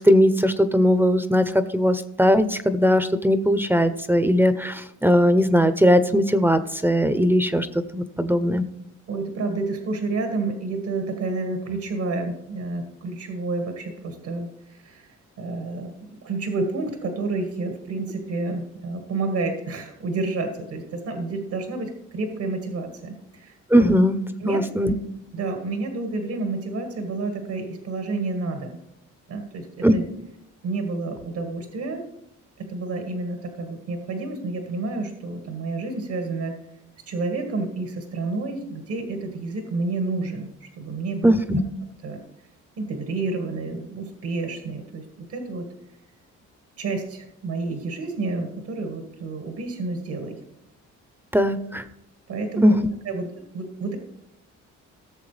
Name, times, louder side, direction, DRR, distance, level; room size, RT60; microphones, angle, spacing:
voice 1, 0.0-1.4 1.7-7.7 7.9-8.6 23.7-24.2 24.5-24.9 29.8-29.9 41.2-41.6 51.3-51.8 52.6-52.7, equal, 5° right, 12 dB, 0.6 m, -19 dB
voice 2, 9.1-15.1 15.4-23.5 24.4-25.0 25.3-28.8 29.3-30.0 30.6-32.0 32.6-36.6 37.1-41.3 42.0-42.2 42.8-45.7 46.8-50.4 52.3-52.8 53.0-54.0, right 3 dB, 80° right, 4 dB, 1.7 m, -29 dB
16.5 x 6.8 x 3.3 m, 0.78 s
cardioid pair, 90°, 30 cm